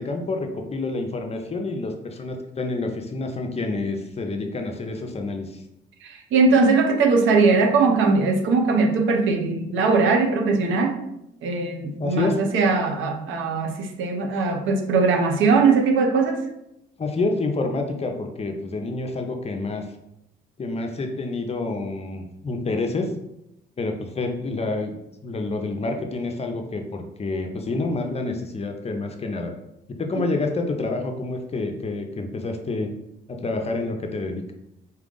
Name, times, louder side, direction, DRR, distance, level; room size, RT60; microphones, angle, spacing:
voice 1, 0.0-5.6 12.0-12.4 17.0-19.9 20.6-23.1 23.8-29.5 29.9-32.9 33.3-34.5, left 3 dB, 30° left, 4 dB, 0.6 m, -28 dB
voice 2, 6.0-11.0 11.4-16.4, right 4 dB, 75° right, 3 dB, 0.7 m, -20 dB
4.1 x 2.4 x 3.7 m, 0.82 s
cardioid pair, 90°, 20 cm